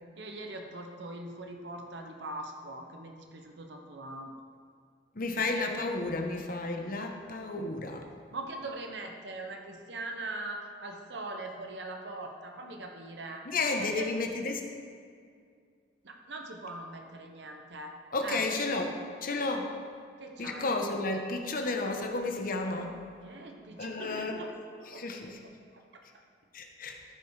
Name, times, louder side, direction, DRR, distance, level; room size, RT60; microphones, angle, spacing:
voice 1, 0.2-4.3 8.3-13.5 13.8-14.1 16.0-18.5 20.2-20.7 23.2-24.5 24.8-25.2 25.7-26.2, right 2 dB, 90° right, 3 dB, 1.0 m, -41 dB
voice 2, 5.1-8.1 13.4-14.6 18.1-18.9 19.2-19.7 20.4-23.0 23.8-24.4 24.9-25.5 26.5-27.0, left 3 dB, 55° left, 3 dB, 1.0 m, -32 dB
14.0 x 5.4 x 4.8 m, 2.2 s
head